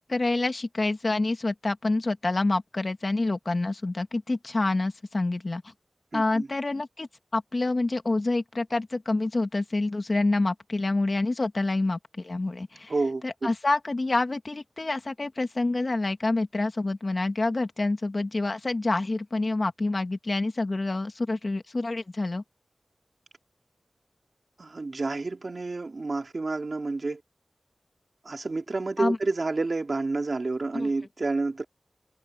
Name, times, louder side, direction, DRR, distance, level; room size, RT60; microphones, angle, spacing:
voice 1, 0.1-5.7 6.1-7.1 7.3-12.9 13.2-22.4 29.0-29.2 30.7-30.9, left 2 dB, 45° left, 1.9 m, -27 dB
voice 2, 6.1-6.5 12.9-13.5 24.6-27.2 28.2-31.6, right 3 dB, 55° right, 2.5 m, -29 dB
wide cardioid pair, 70°, 0 cm